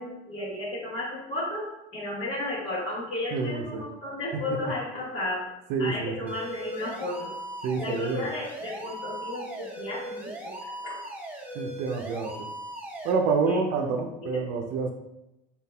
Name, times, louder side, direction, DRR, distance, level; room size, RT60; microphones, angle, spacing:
voice 1, 0.0-1.7 1.9-5.4 5.8-7.3 7.8-10.9 13.5-14.4, left 2 dB, 65° left, -9 dB, 1.5 m, -34 dB
voice 2, 3.3-3.8 4.3-4.4 5.7-6.3 7.6-8.3 11.5-12.5 13.0-14.9, right 4 dB, 75° right, 3 dB, 0.5 m, -28 dB
sound 1, 6.3-13.1, right 1 dB, 10° right, 0.8 m, -39 dB
4.0 x 4.0 x 2.2 m, 0.91 s
supercardioid pair, 80°, 19 cm